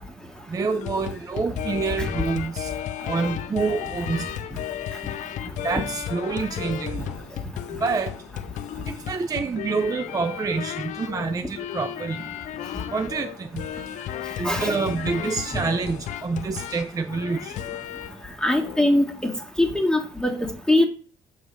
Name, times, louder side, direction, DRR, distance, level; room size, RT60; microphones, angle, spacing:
voice 1, 0.5-2.7 3.0-4.2 5.6-7.0 7.8-8.1 8.9-12.2 12.9-13.6 14.4-17.5, right 4 dB, 25° right, 0.5 m, -27 dB
sound 1, 0.7-18.2 18.6-18.9, left 11 dB, 55° left, 0.4 m, -34 dB
voice 2, 14.4-14.8 15.5-15.6 18.4-19.3 19.6-20.9, left 1 dB, 5° left, 1.5 m, -22 dB
6.1 x 3.2 x 5.2 m
hypercardioid pair, 50°, 15 cm